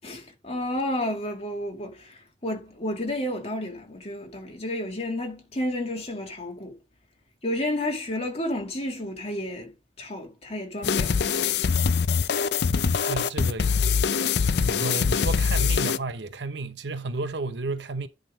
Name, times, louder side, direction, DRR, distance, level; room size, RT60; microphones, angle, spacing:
voice 1, 0.0-6.8 7.4-11.2, left 1 dB, 35° left, 2.2 m, -31 dB
sound 1, 10.8-16.0, left 6 dB, 65° left, 0.5 m, -23 dB
voice 2, 12.6-13.8 14.6-18.1, right 3 dB, 80° right, 0.9 m, -32 dB
10.5 x 3.8 x 5.1 m
head